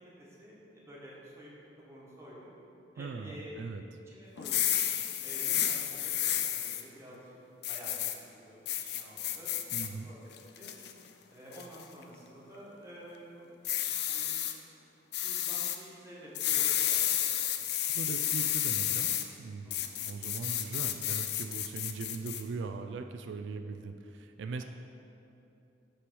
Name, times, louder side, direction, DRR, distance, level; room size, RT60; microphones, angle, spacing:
voice 1, 0.2-1.5 1.8-2.5 2.9-3.6 4.0-4.7 5.2-7.3 7.7-9.6 10.0-10.7 11.3-13.5 14.0-14.4 15.2-17.0 17.3-18.0 19.6-20.0, equal, 15° right, -6 dB, 1.5 m, -50 dB
voice 2, 3.0-3.8 9.7-10.1 17.9-24.6, right 4 dB, 90° right, 7 dB, 0.3 m, -40 dB
sound 1, 4.4-6.8 7.6-8.2 8.7-9.9 10.3-10.9 11.5-11.8 13.6-14.5 15.1-15.8 16.4-19.3 19.7-22.4, left 11 dB, 65° left, 0.4 m, -31 dB
5.9 x 4.8 x 6.1 m, 2.8 s
head